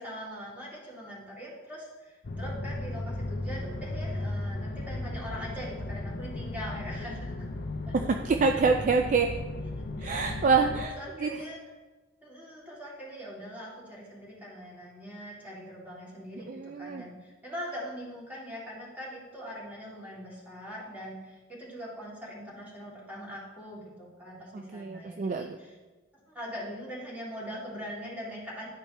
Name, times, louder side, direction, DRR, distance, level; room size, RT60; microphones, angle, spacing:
voice 1, 0.0-7.5 7.9-8.0 10.0-10.2 11.0-11.6 12.2-25.7 26.3-28.7, equal, 10° right, -6 dB, 1.9 m, -42 dB
sound 1, 2.2-10.9, left 2 dB, 45° left, 0.5 m, -36 dB
voice 2, 7.9-9.3 10.0-11.3 16.5-17.0 24.5-25.6, right 4 dB, 35° right, 5 dB, 0.3 m, -26 dB
11.0 x 4.4 x 3.2 m, 1.2 s
head